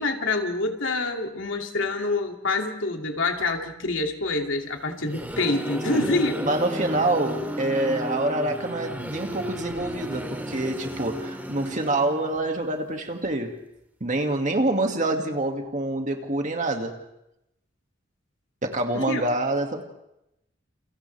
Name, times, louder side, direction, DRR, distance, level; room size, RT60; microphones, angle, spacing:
voice 1, 0.0-6.3 18.9-19.2, left 2 dB, 90° left, 3 dB, 2.6 m, -26 dB
sound 1, 4.8-12.5, equal, 10° right, 2.7 m, -33 dB
voice 2, 6.4-13.6 14.0-17.0 18.6-19.8, right 2 dB, 40° right, 3 dB, 2.2 m, -26 dB
30.0 x 29.0 x 3.5 m, 0.85 s
head